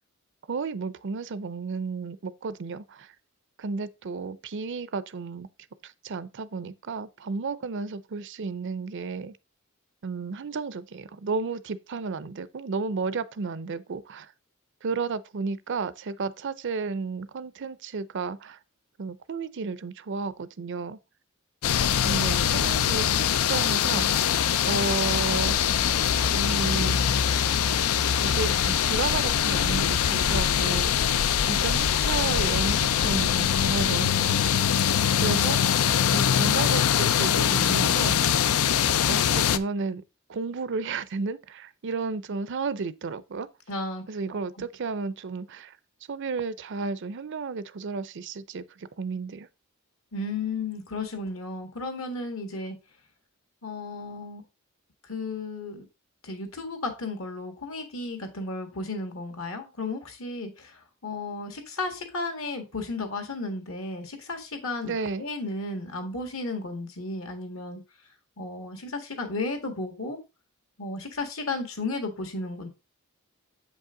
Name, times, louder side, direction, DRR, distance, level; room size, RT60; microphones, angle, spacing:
voice 1, 0.5-3.1 3.6-5.5 5.8-9.4 10.0-14.3 14.8-18.6 19.0-21.0 22.0-24.1 24.6-25.6 26.3-27.0 28.2-30.9 31.5-34.7 35.2-35.6 36.1-38.2 39.1-40.0 40.3-43.5 44.1-45.8 46.1-49.5 64.8-65.3, right 4 dB, 55° right, 0.5 m, -32 dB
sound 1, 21.6-39.6, left 8 dB, 85° left, 0.5 m, -23 dB
voice 2, 43.7-44.0 50.1-52.8 53.6-54.4 55.1-55.9 56.2-67.8 68.4-70.2 70.8-72.7, left 3 dB, 65° left, 1.8 m, -34 dB
7.8 x 5.4 x 3.7 m
head